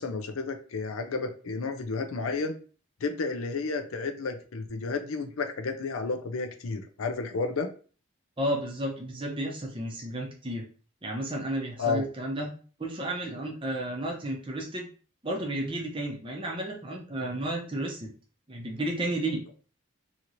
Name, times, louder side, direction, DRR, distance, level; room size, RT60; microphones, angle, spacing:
voice 1, 0.0-2.6 3.0-7.7 11.8-12.0, left 4 dB, 85° left, 6 dB, 0.5 m, -31 dB
voice 2, 8.4-10.6 11.0-12.5 12.8-14.9 15.2-18.1 18.5-19.4, right 1 dB, 25° right, 0 dB, 0.6 m, -32 dB
3.0 x 2.8 x 2.5 m, 0.39 s
head